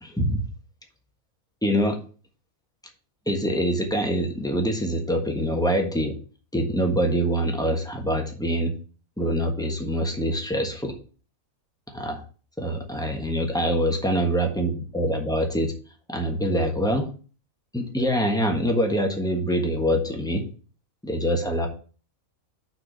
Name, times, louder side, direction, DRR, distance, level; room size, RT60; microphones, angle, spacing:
voice 1, 0.0-0.4 1.6-2.0 3.3-6.1 6.5-8.7 9.2-10.9 11.9-12.2 12.6-15.7 16.1-17.1 17.7-20.4 21.0-21.7, equal, 5° left, 3 dB, 1.2 m, -24 dB
6.1 x 4.5 x 6.4 m, 0.39 s
omnidirectional pair, 1.4 m